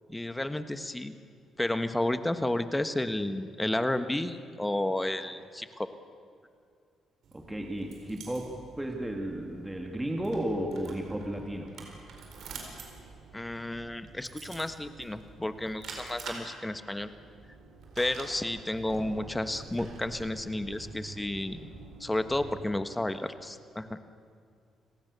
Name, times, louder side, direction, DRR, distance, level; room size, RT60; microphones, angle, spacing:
voice 1, 0.1-1.1 1.6-5.9 13.3-17.1 18.0-21.7 22.0-24.0, left 1 dB, 10° left, 10 dB, 1.4 m, -32 dB
sound 1, 7.2-22.6, right 4 dB, 70° right, 4.7 m, -47 dB
voice 2, 7.3-11.7, right 1 dB, 10° right, 1 dB, 2.8 m, -34 dB
29.5 x 18.5 x 6.9 m, 2.3 s
cardioid pair, 90°, 0 cm